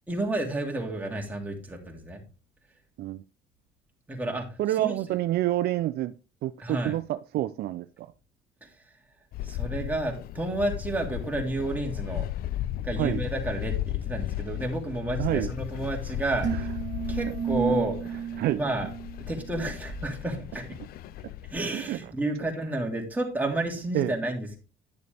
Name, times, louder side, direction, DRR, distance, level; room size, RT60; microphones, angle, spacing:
voice 1, 0.1-2.2 4.1-5.2 6.6-6.9 8.6-8.7 9.4-12.3 12.8-16.7 17.1-18.9 19.3-20.8 21.5-24.6, right 2 dB, 10° right, 2.7 m, -31 dB
voice 2, 4.6-6.1 6.4-8.1 13.0-13.2 15.2-15.5 18.4-18.6 21.7-22.0 23.9-24.1, right 14 dB, 70° right, 0.5 m, -28 dB
sound 1, 9.3-21.6, left 13 dB, 65° left, 0.4 m, -35 dB
sound 2, 16.4-19.8, right 9 dB, 45° right, 1.0 m, -33 dB
10.5 x 6.7 x 3.4 m
cardioid pair, 110°, 17 cm